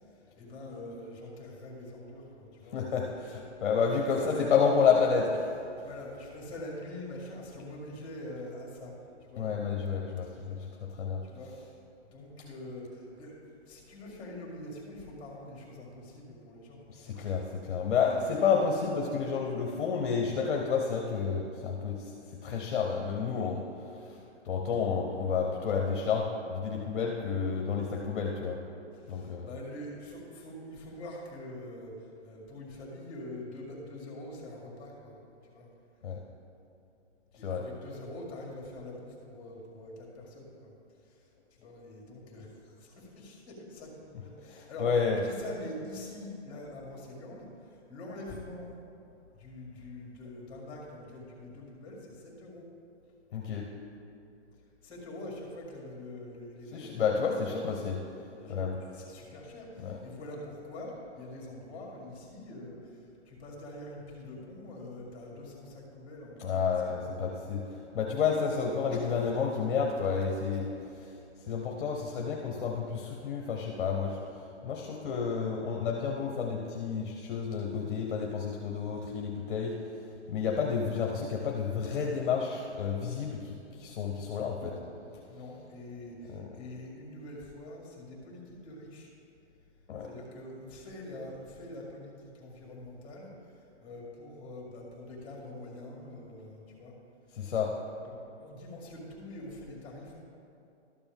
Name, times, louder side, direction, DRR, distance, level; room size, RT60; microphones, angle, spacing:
voice 1, 0.0-2.8 4.0-4.5 5.8-9.5 10.2-10.6 11.2-11.8 12.1-17.3 18.1-18.3 27.9-28.0 28.9-35.7 37.3-44.9 45.2-48.7 49.3-52.7 54.8-57.7 58.4-67.1 68.9-69.1 84.5-84.8 85.3-89.1 90.0-96.9 97.3-97.4 97.8-100.2, left 1 dB, 15° left, -2 dB, 2.1 m, -45 dB
voice 2, 2.7-5.5 9.4-11.2 16.9-22.1 22.4-24.2 24.4-28.6 29.1-29.5 36.0-36.2 37.4-37.6 44.5-45.2 53.3-53.7 56.7-58.0 58.5-58.8 59.8-60.0 66.4-71.1 71.5-74.2 74.6-84.7 86.3-86.5 89.9-90.1 97.3-97.8, left 6 dB, 45° left, 0 dB, 0.8 m, -30 dB
12.5 x 6.8 x 3.5 m, 2.7 s
hypercardioid pair, 160°, 36 cm